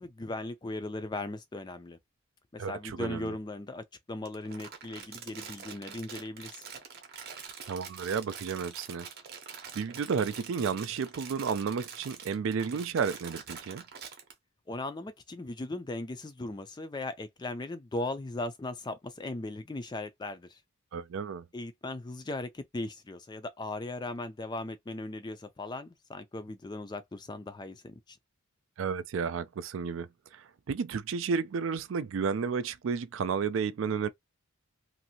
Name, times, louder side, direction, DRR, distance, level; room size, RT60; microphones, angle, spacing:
voice 1, 0.0-2.0 2.5-6.6 14.7-20.6 21.5-28.2, left 2 dB, 20° left, 0.3 m, -38 dB
voice 2, 2.6-3.3 7.7-9.1 9.7-13.8 20.9-21.5 28.8-30.1 30.3-34.1, right 6 dB, 60° right, 0.3 m, -32 dB
Crumpling crinkling, 4.2-14.3, right 6 dB, 45° right, 0.7 m, -45 dB
2.7 x 2.5 x 2.7 m
head